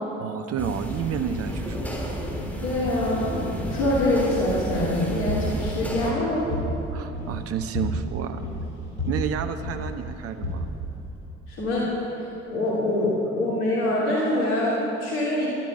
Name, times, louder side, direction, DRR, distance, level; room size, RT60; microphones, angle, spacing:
voice 1, 0.2-2.3 6.9-8.4 9.1-10.7, right 7 dB, 45° right, 9 dB, 0.8 m, -30 dB
sound 1, 0.6-6.1, equal, 5° left, 3.2 m, -33 dB
voice 2, 2.6-3.4 3.7-6.4 11.5-11.9 12.2-15.5, left 1 dB, 70° left, -6 dB, 2.7 m, -24 dB
sound 2, 3.0-11.7, equal, 90° right, 3.9 m, -33 dB
11.5 x 11.5 x 8.0 m, 3.0 s
figure-of-eight pair, 50°, 32 cm